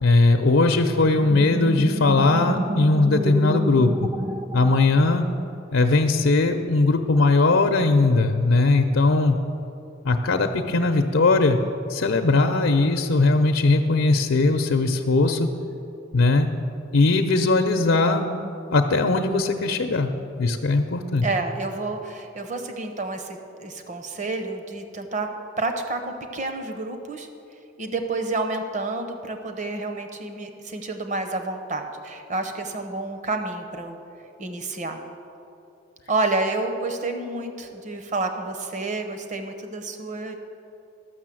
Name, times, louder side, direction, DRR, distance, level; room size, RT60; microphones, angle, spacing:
voice 1, 0.0-4.1 4.5-5.2 5.7-9.4 10.0-11.6 11.9-15.5 16.1-16.5 16.9-18.2 18.7-20.1 20.4-21.2, left 3 dB, 80° left, 4 dB, 0.6 m, -19 dB
sound 1, 1.3-5.5, right 1 dB, 20° right, 0.3 m, -30 dB
voice 2, 21.2-27.3 27.8-34.0 34.4-35.0 36.1-40.4, right 3 dB, 35° right, 6 dB, 0.8 m, -29 dB
12.5 x 6.4 x 7.6 m, 2.7 s
head